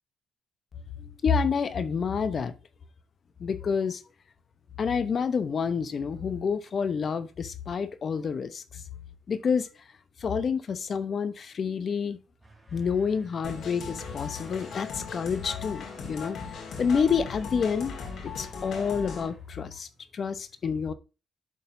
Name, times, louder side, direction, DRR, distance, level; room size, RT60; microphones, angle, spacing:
voice 1, 1.0-2.5 3.4-4.0 4.8-8.8 9.3-9.7 10.2-12.2 12.7-17.9 18.2-19.9 20.1-20.9, left 6 dB, 50° left, 0.8 m, -28 dB
sound 1, 12.3-20.3, right 2 dB, 10° right, 2.5 m, -52 dB
sound 2, 13.4-19.3, left 5 dB, 70° left, 1.7 m, -38 dB
11.5 x 4.0 x 2.6 m
cardioid pair, 90°, 0 cm